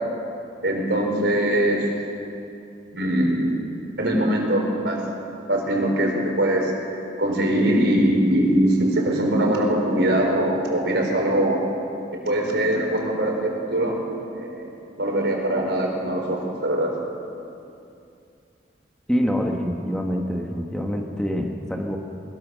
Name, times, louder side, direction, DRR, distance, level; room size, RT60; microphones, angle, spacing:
voice 1, 0.6-1.9 2.9-3.5 4.0-5.0 5.5-11.6 12.1-14.0 14.4-14.7 15.0-16.9, right 1 dB, 70° right, 0 dB, 4.5 m, -22 dB
voice 2, 19.1-22.0, equal, 5° left, 1 dB, 1.4 m, -25 dB
21.5 x 20.5 x 6.4 m, 2.6 s
head